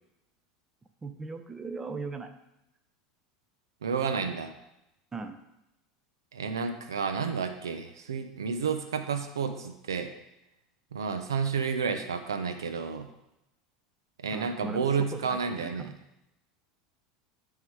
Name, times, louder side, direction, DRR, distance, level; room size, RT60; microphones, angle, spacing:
voice 1, 1.0-2.3 5.1-5.4 14.3-15.9, right 4 dB, 20° right, 8 dB, 0.8 m, -39 dB
voice 2, 3.8-4.5 6.3-10.1 10.9-13.1 14.2-15.9, right 6 dB, 85° right, 8 dB, 0.7 m, -31 dB
9.4 x 3.8 x 4.7 m, 0.90 s
hypercardioid pair, 85°, 2 cm